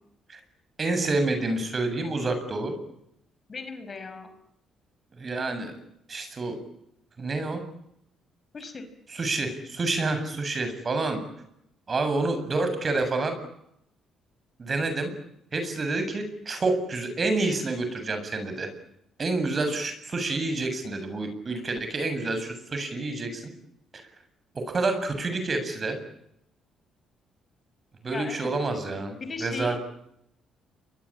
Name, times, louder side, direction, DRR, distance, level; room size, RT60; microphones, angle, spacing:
voice 1, 0.8-2.8 5.2-5.7 6.1-6.6 7.2-7.6 9.1-11.2 11.9-13.4 14.6-15.1 15.5-18.7 19.2-23.5 24.5-26.0 28.0-29.8, right 3 dB, 35° right, 8 dB, 7.6 m, -28 dB
voice 2, 3.5-4.3 8.5-8.9 28.1-29.8, left 4 dB, 35° left, 9 dB, 5.2 m, -38 dB
29.0 x 23.0 x 8.9 m, 0.78 s
cardioid pair, 85°, 0 cm